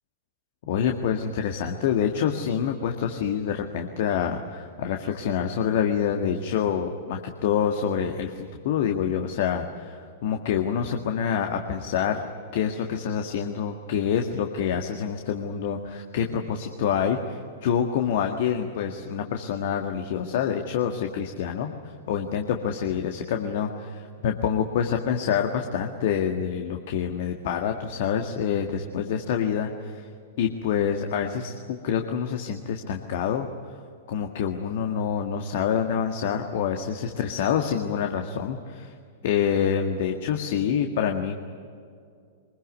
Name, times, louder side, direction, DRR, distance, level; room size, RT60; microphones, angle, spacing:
voice 1, 0.7-12.3 12.5-21.7 22.1-23.9 24.2-30.1 30.4-33.5 34.1-38.9 39.2-41.4, left 8 dB, 55° left, 4 dB, 1.8 m, -26 dB
24.0 x 21.5 x 9.6 m, 2.3 s
figure-of-eight pair, 100°, 0 cm